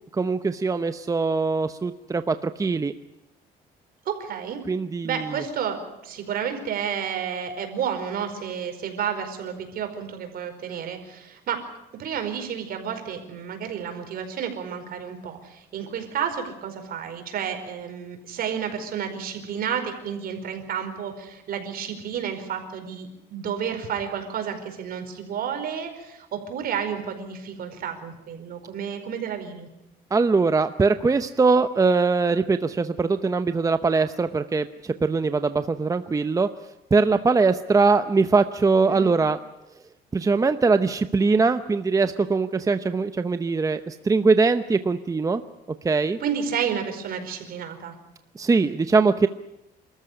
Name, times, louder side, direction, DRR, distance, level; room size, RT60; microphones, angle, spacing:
voice 1, 0.1-2.9 4.7-5.3 30.1-36.5 36.9-39.4 40.1-45.4 45.8-46.2 48.4-49.3, right 4 dB, 20° right, 10 dB, 0.8 m, -22 dB
voice 2, 4.0-4.6 5.0-5.8 6.0-11.6 12.0-29.7 38.9-39.1 46.2-47.9, right 8 dB, 60° right, 6 dB, 4.8 m, -31 dB
28.5 x 14.0 x 9.9 m, 0.91 s
cardioid pair, 110°, 17 cm